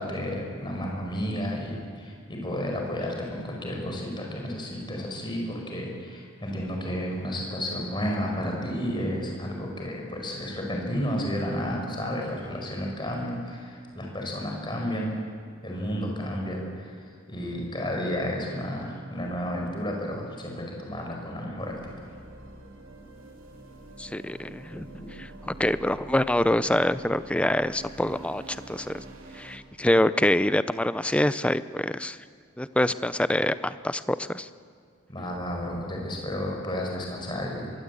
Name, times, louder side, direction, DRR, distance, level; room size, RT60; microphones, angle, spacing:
voice 1, 0.0-15.2 15.6-21.7 22.1-22.2 24.7-25.1 35.1-37.7, equal, 25° left, 0 dB, 5.3 m, -32 dB
sound 1, 21.6-29.6, right 2 dB, 80° right, 3.1 m, -46 dB
voice 2, 24.0-24.9 25.1-29.0 29.3-32.2 32.6-34.5, left 1 dB, 5° left, 14 dB, 0.5 m, -25 dB
23.0 x 22.0 x 8.5 m, 2.1 s
head